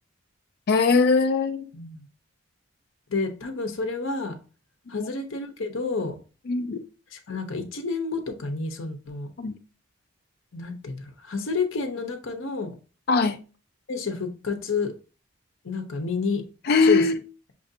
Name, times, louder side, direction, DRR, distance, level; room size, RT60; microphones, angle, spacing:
voice 1, 0.7-1.7 4.9-5.1 6.5-6.8 9.4-9.6 13.1-13.4 16.6-17.2, left 4 dB, 50° left, 0.4 m, -21 dB
voice 2, 1.7-2.1 3.1-4.4 4.9-6.2 7.3-9.3 10.5-12.8 13.9-14.9 15.6-16.4 16.8-17.0, left 4 dB, 70° left, 0.8 m, -29 dB
6.0 x 2.5 x 2.7 m
head